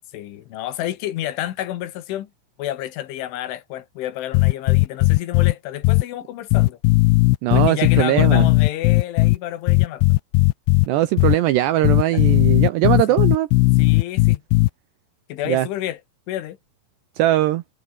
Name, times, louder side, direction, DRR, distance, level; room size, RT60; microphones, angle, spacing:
voice 1, 0.1-2.3 2.6-6.8 7.5-10.1 12.1-12.2 13.1-13.2 13.8-14.4 15.3-16.0 16.3-16.6, left 13 dB, 75° left, 3.9 m, -30 dB
sound 1, 4.3-5.5 5.8-6.0 6.5-9.4 9.7-10.9 11.2-11.3 11.8-14.7, left 21 dB, 90° left, 2.5 m, -16 dB
voice 2, 7.4-8.5 10.9-13.5 15.5-15.7 17.2-17.6, right 15 dB, 75° right, 2.6 m, -20 dB
omnidirectional pair, 5.8 m